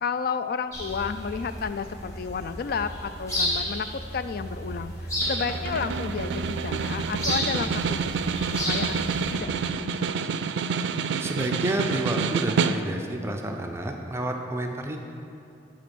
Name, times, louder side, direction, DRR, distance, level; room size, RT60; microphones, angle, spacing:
voice 1, 0.0-3.9 4.1-8.4 8.7-9.0 9.3-10.2, left 5 dB, 55° left, 11 dB, 0.4 m, -32 dB
sound 1, 0.7-9.4, equal, 20° left, 2.1 m, -32 dB
Snare drum, 5.2-13.2, right 5 dB, 85° right, 0.4 m, -28 dB
voice 2, 11.2-15.0, right 1 dB, 15° right, 3 dB, 0.5 m, -30 dB
7.4 x 5.0 x 7.0 m, 2.6 s
head